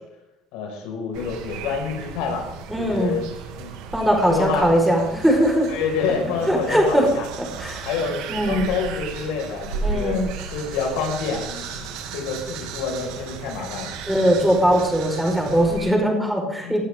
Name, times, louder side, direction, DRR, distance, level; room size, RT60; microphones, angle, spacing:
voice 1, 0.5-2.5 2.8-3.2 3.6-3.7 4.3-4.7 5.7-7.3 7.8-10.2 10.5-13.9 14.4-14.5 16.6-16.8, left 5 dB, 85° left, 1 dB, 5.7 m, -28 dB
sound 1, 1.1-15.9, right 4 dB, 80° right, 2.7 m, -34 dB
voice 2, 2.7-3.2 3.9-5.7 6.5-7.1 7.4-7.9 8.3-8.7 9.8-10.3 14.1-16.8, equal, ahead, 0 dB, 5.1 m, -20 dB
20.0 x 12.0 x 3.8 m, 0.88 s
cardioid pair, 125°, 0 cm